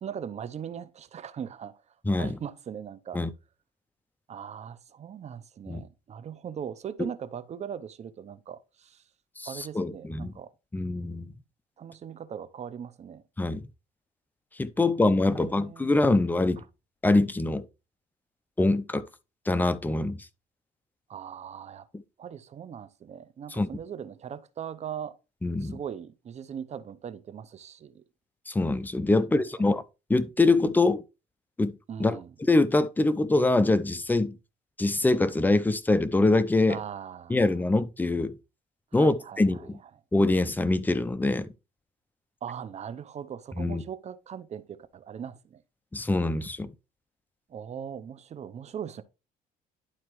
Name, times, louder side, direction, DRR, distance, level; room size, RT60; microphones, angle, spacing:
voice 1, 0.0-1.8 2.2-3.2 4.3-9.0 9.4-10.5 11.8-13.2 15.2-16.2 21.1-21.9 22.2-25.2 25.6-28.0 29.1-29.4 31.9-32.3 36.7-37.5 38.9-39.7 42.4-45.6 47.5-49.0, right 8 dB, 40° right, 0.7 m, -40 dB
voice 2, 2.1-2.4 3.1-3.3 5.7-5.8 9.4-9.5 9.7-10.3 10.7-11.3 13.4-13.6 14.6-16.6 17.0-17.6 18.6-19.1 19.5-20.2 23.6-23.7 25.4-25.8 28.5-29.8 30.1-31.0 31.6-32.2 32.5-34.4 34.8-36.8 37.3-38.4 38.9-39.8 40.1-41.5 43.6-43.8 45.9-46.7, left 2 dB, 10° left, 0.7 m, -24 dB
11.5 x 4.3 x 3.1 m
cardioid pair, 110°, 17 cm